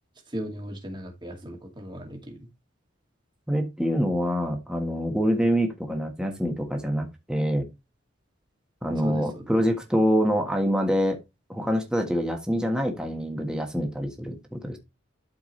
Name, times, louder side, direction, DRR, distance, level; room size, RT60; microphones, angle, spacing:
voice 1, 0.3-2.4 9.0-9.5, equal, 25° right, 2.3 m, -37 dB
voice 2, 3.5-7.7 8.8-11.2 11.5-14.8, equal, 5° right, 1.4 m, -25 dB
12.5 x 4.8 x 3.2 m
head